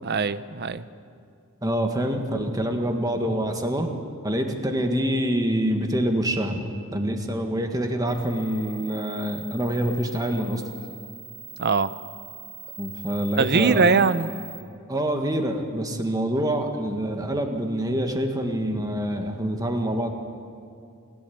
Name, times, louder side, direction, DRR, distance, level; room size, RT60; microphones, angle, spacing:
voice 1, 0.0-0.8 11.6-11.9 13.4-14.3, right 4 dB, 50° right, 14 dB, 0.7 m, -21 dB
voice 2, 1.6-3.9 4.2-6.7 6.9-10.6 12.8-13.9 14.9-20.1, equal, 15° right, 4 dB, 1.7 m, -26 dB
sound 1, 8.1-14.6, right 4 dB, 65° right, 4.8 m, -42 dB
27.0 x 12.5 x 8.6 m, 2.4 s
head